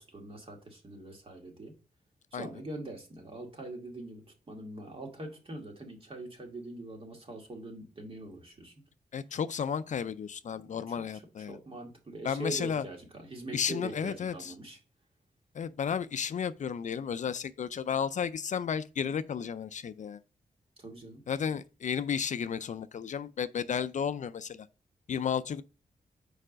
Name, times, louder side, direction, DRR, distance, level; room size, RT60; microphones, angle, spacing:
voice 1, 0.0-1.7 2.3-8.7 10.5-10.6 10.9-11.0 11.5-14.8 20.8-21.2, right 2 dB, 40° right, 2.3 m, -43 dB
voice 2, 9.1-11.6 12.2-12.8 13.5-14.5 15.5-20.2 21.3-24.7 25.1-25.6, left 7 dB, 60° left, 0.4 m, -33 dB
4.9 x 4.5 x 6.1 m
cardioid pair, 80°, 15 cm